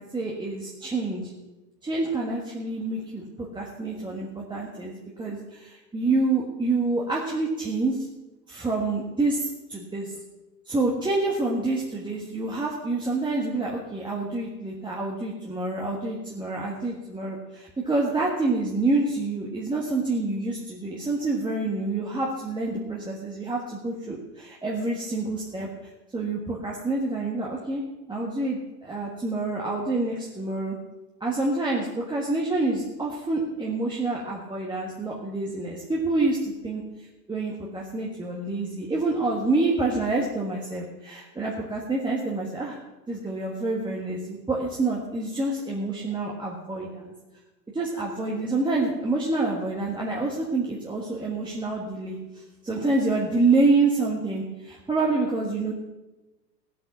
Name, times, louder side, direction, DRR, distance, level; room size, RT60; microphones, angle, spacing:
voice 1, 0.0-1.3 1.8-8.1 8.5-10.1 10.7-25.7 26.1-27.8 28.1-30.8 31.2-36.8 37.3-42.8 43.1-47.1 47.7-55.7, right 3 dB, 10° right, -3 dB, 1.5 m, -27 dB
15.5 x 8.5 x 6.0 m, 1.1 s
hypercardioid pair, 115°, 50 cm